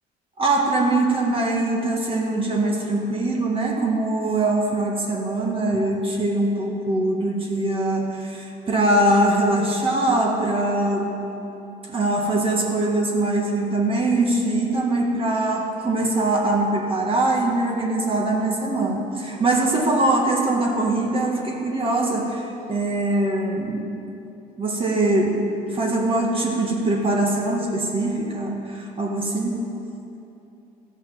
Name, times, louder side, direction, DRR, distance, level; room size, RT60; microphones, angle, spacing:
voice 1, 0.4-11.2 11.9-23.9 24.6-25.4 25.7-29.6, right 2 dB, 35° right, -1 dB, 1.6 m, -22 dB
14.0 x 5.5 x 7.1 m, 2.8 s
cardioid pair, 110°, 17 cm